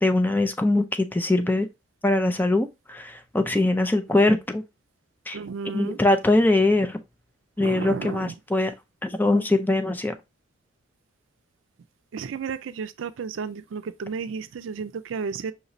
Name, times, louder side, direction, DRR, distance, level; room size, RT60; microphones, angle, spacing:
voice 1, 0.0-1.7 2.0-4.6 5.3-5.4 5.7-7.0 7.6-8.7 9.0-10.1, left 2 dB, 10° left, 0.4 m, -22 dB
voice 2, 5.3-6.0 7.6-8.3 12.1-15.5, right 5 dB, 80° right, 0.4 m, -33 dB
5.7 x 3.0 x 2.6 m
head